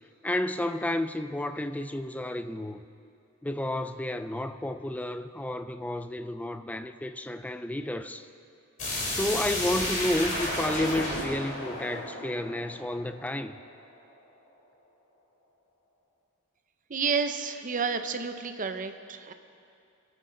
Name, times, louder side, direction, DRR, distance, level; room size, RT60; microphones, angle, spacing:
voice 1, 0.2-2.8 3.4-8.3 9.1-13.6, left 1 dB, 5° left, 0.4 m, -31 dB
sound 1, 8.8-13.5, left 1 dB, 35° left, 3.2 m, -32 dB
voice 2, 16.9-19.3, right 5 dB, 35° right, 0.7 m, -30 dB
27.0 x 9.0 x 3.9 m
head